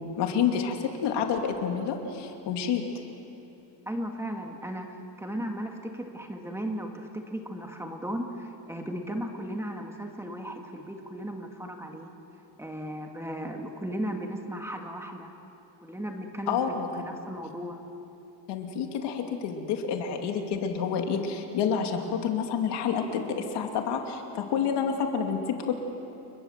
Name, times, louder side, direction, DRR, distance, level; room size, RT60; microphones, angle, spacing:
voice 1, 0.2-2.8 16.5-16.9 18.5-25.7, left 7 dB, 70° left, 3 dB, 2.8 m, -28 dB
voice 2, 3.9-12.1 12.6-15.3 15.8-17.8, right 1 dB, 5° right, 3 dB, 1.8 m, -36 dB
29.5 x 22.0 x 7.6 m, 2.9 s
cardioid pair, 155°, 43 cm